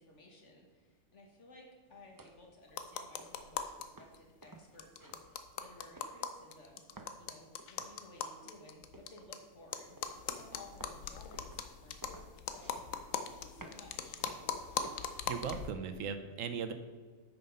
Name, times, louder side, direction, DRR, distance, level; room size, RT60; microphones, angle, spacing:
voice 1, 0.0-6.8 7.2-10.0 10.2-14.2, left 2 dB, 65° left, 0 dB, 2.0 m, -57 dB
sound 1, 1.9-16.1, right 2 dB, 20° right, 0.6 m, -58 dB
sound 2, 2.7-3.9 4.1-4.2 4.4-4.5 4.8-9.4 9.7-15.7, left 7 dB, 80° left, 1.1 m, -40 dB
voice 2, 15.3-16.7, right 6 dB, 75° right, 9 dB, 1.1 m, -38 dB
9.2 x 5.7 x 5.4 m, 1.5 s
omnidirectional pair, 1.4 m